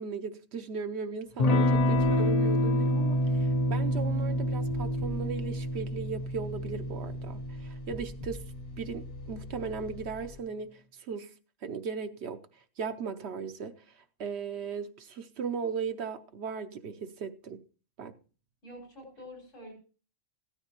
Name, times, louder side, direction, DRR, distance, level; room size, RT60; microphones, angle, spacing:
voice 1, 0.0-8.4 8.8-11.3 11.6-12.4 12.8-13.7 14.2-17.6 18.0-18.1, right 6 dB, 60° right, 0.9 m, -37 dB
Electric guitar / Strum, 1.4-9.7, left 1 dB, 40° left, 0.6 m, -28 dB
sound 1, 1.7-10.4, left 3 dB, 65° left, 2.1 m, -45 dB
voice 2, 18.6-19.7, left 1 dB, 85° left, 5.9 m, -47 dB
16.0 x 13.5 x 2.9 m
omnidirectional pair, 1.3 m